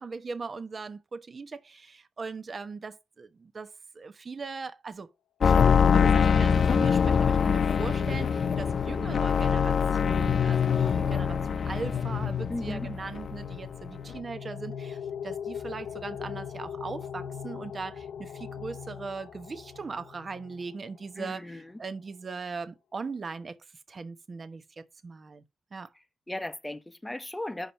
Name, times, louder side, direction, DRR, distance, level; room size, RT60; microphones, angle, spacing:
voice 1, 0.0-5.1 5.4-23.6 23.9-25.4 25.7-25.9, right 4 dB, 40° right, 0.9 m, -39 dB
sound 1, 5.4-12.9 13.1-13.8 14.1-14.2, left 6 dB, 60° left, 0.4 m, -24 dB
sound 2, 6.1-20.6, left 7 dB, 85° left, 0.7 m, -37 dB
voice 2, 12.5-12.9 21.2-21.7 26.3-27.7, left 1 dB, 10° left, 0.9 m, -36 dB
5.6 x 4.7 x 5.7 m
cardioid pair, 85°, 0 cm